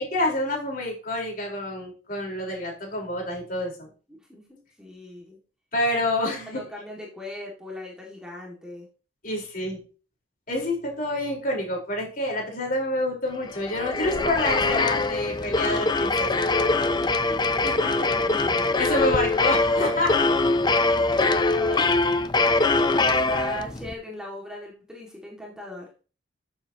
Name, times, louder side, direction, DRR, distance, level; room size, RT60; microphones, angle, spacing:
voice 1, 0.1-3.9 5.7-6.6 9.2-9.8 10.5-16.5 17.6-17.7 18.8-20.2 21.7-21.9, left 1 dB, 50° left, -1 dB, 4.3 m, -28 dB
voice 2, 4.1-5.4 6.3-8.9 17.1-18.8 21.1-22.3 22.8-25.9, left 1 dB, 5° right, -2 dB, 2.1 m, -39 dB
sound 1, 13.5-23.9, left 3 dB, 25° left, 0.6 m, -23 dB
13.5 x 7.2 x 2.9 m, 0.37 s
head